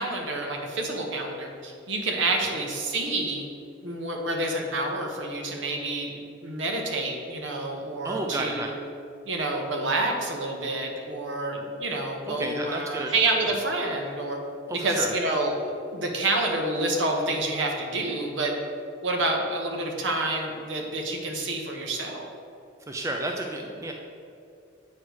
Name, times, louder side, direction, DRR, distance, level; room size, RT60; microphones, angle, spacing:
voice 1, 0.0-3.4 3.8-8.7 9.3-14.4 14.7-15.6 15.9-18.5 19.0-22.3, right 2 dB, 65° right, 2 dB, 1.0 m, -28 dB
voice 2, 8.0-8.7 12.3-13.1 14.7-15.1 22.9-23.9, right 1 dB, 15° right, 2 dB, 0.4 m, -31 dB
8.4 x 3.2 x 6.3 m, 2.5 s
head